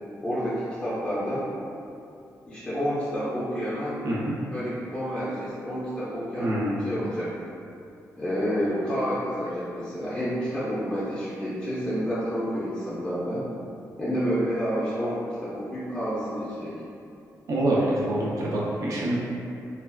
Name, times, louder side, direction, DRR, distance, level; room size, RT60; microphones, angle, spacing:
voice 1, 0.2-1.5 2.5-4.0 4.5-7.3 8.2-13.4 14.0-16.8, equal, 10° left, -11 dB, 0.5 m, -29 dB
voice 2, 4.0-4.4 6.4-6.9 17.5-19.2, right 1 dB, 60° right, -6 dB, 0.5 m, -26 dB
3.3 x 2.3 x 2.2 m, 2.6 s
wide cardioid pair, 155°, 6 cm